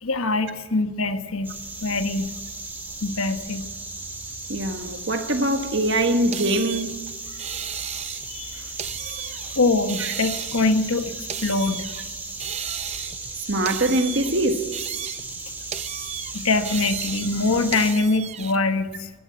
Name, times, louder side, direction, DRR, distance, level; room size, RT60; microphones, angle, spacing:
voice 1, 0.0-1.5 1.8-2.3 3.0-3.6 8.3-8.6 9.5-11.1 11.4-11.9 16.3-19.1, left 3 dB, 80° left, 1.3 m, -23 dB
sound 1, 1.4-17.9, right 2 dB, 10° right, 2.3 m, -36 dB
voice 2, 4.5-7.0 8.5-8.6 9.2-9.3 10.0-10.1 13.4-14.7, right 1 dB, 55° right, 1.5 m, -23 dB
sound 2, 6.3-8.4 8.8-9.6 9.9-12.1 12.4-13.3 13.7-15.4 15.7-18.6, right 9 dB, 30° right, 0.5 m, -34 dB
14.5 x 13.0 x 7.4 m
head